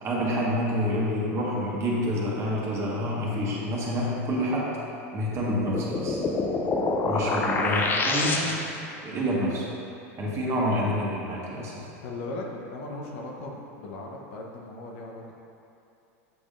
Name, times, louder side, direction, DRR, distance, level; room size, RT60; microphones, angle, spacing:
voice 1, 0.0-4.7 5.1-6.2 7.0-8.6 9.0-9.7 10.2-11.8, equal, 35° right, -5 dB, 1.4 m, -28 dB
sound 1, 5.3-8.9, left 3 dB, 25° left, 0.5 m, -27 dB
voice 2, 12.0-15.3, left 2 dB, 65° left, 0 dB, 0.8 m, -38 dB
7.8 x 5.0 x 2.5 m, 2.7 s
hypercardioid pair, 115°, 8 cm